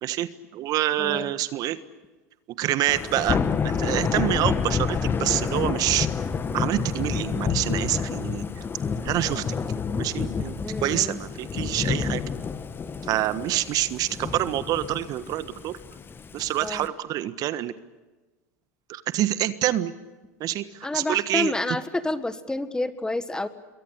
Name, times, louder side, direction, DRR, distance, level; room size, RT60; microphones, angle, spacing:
voice 1, 0.0-1.8 2.6-6.1 6.5-8.6 9.0-9.4 10.0-12.2 13.1-15.8 16.3-17.7 18.9-19.9 20.4-21.5, right 13 dB, 50° right, 14 dB, 1.4 m, -27 dB
voice 2, 1.0-1.3 10.6-11.2 16.6-16.9 20.8-23.5, left 2 dB, 10° left, 12 dB, 1.7 m, -29 dB
Thunder / Rain, 2.9-16.9, left 6 dB, 25° left, 1.6 m, -29 dB
27.0 x 22.5 x 8.2 m, 1.2 s
hypercardioid pair, 90°, 8 cm